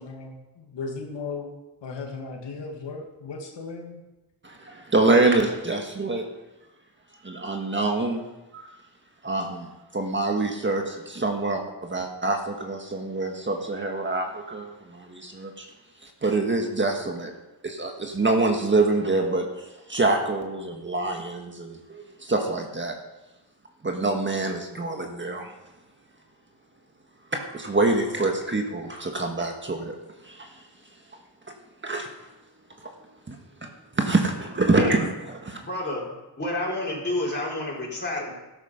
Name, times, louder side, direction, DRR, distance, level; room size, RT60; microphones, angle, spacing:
voice 1, 0.0-1.5 1.8-4.0, left 4 dB, 80° left, 1 dB, 2.3 m, -36 dB
voice 2, 4.4-6.2 7.2-8.2 8.5-8.7 9.2-15.7 16.0-17.3 17.6-23.0 23.8-25.5 27.3-30.0 30.2-30.5 31.8-32.1 32.8-32.9 33.3-33.4 33.6-33.7 34.0-35.6, right 2 dB, 25° right, 3 dB, 1.6 m, -26 dB
voice 3, 34.8-35.1 35.6-36.1 36.4-38.3, left 1 dB, 25° left, -4 dB, 5.2 m, -29 dB
13.5 x 12.5 x 5.2 m, 1.0 s
cardioid pair, 105°, 43 cm